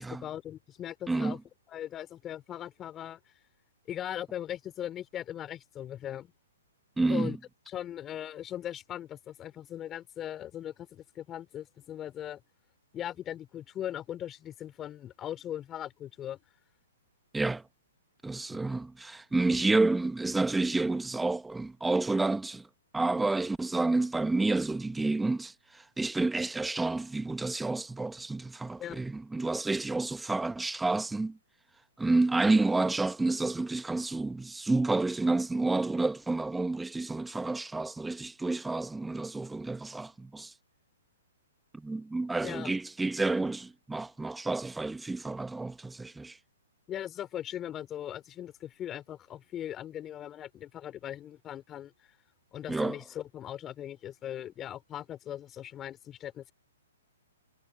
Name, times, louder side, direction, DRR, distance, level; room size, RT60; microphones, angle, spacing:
voice 1, 0.0-1.4 1.7-3.2 3.9-6.3 7.1-7.4 7.7-12.4 12.9-16.4 28.8-29.0 42.4-42.7 46.9-51.9 52.5-56.5, left 11 dB, 20° left, 4.8 m, -39 dB
voice 2, 1.1-1.4 7.0-7.4 17.3-17.6 18.2-22.7 22.9-31.4 32.0-40.5 41.7-46.4 52.7-53.0, right 3 dB, 5° right, 1.4 m, -29 dB
hypercardioid pair, 125°, 0 cm